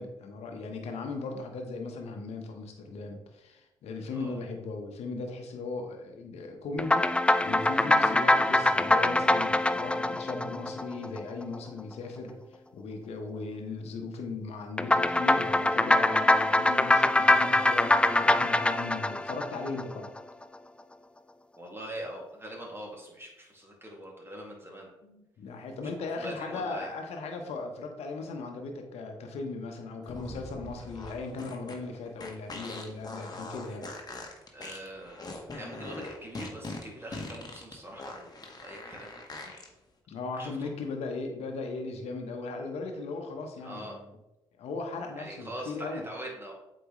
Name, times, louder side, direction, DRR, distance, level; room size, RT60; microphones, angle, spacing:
voice 1, 0.0-7.1 7.4-20.1 25.0-33.9 39.4-39.5 40.1-44.1 44.6-46.1, left 3 dB, 65° left, 4 dB, 1.1 m, -38 dB
voice 2, 4.1-4.4 10.0-10.3 21.6-24.9 25.8-26.9 34.5-39.1 40.4-40.7 43.6-44.0 45.2-46.5, right 1 dB, 20° right, -1 dB, 2.3 m, -43 dB
sound 1, 6.8-11.4 14.8-20.2, left 2 dB, 10° left, 0.3 m, -24 dB
sound 2, 30.0-39.7, left 2 dB, 35° left, 1.3 m, -42 dB
8.0 x 4.6 x 3.1 m, 0.94 s
hypercardioid pair, 45°, 12 cm